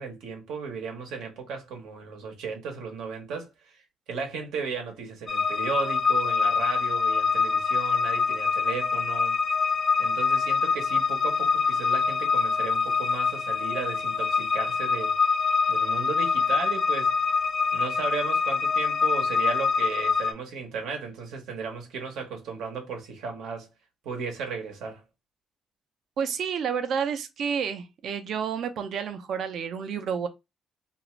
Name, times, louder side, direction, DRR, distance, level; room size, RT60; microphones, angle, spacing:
voice 1, 0.0-3.8 4.1-9.4 10.0-15.1 15.7-17.2 17.7-23.7 24.0-25.0, right 5 dB, 90° right, 0.9 m, -35 dB
sound 1, 5.3-20.3, left 5 dB, 45° left, 0.4 m, -25 dB
voice 2, 26.2-30.3, right 7 dB, 70° right, 0.5 m, -30 dB
2.5 x 2.4 x 3.0 m
cardioid pair, 90°, 0 cm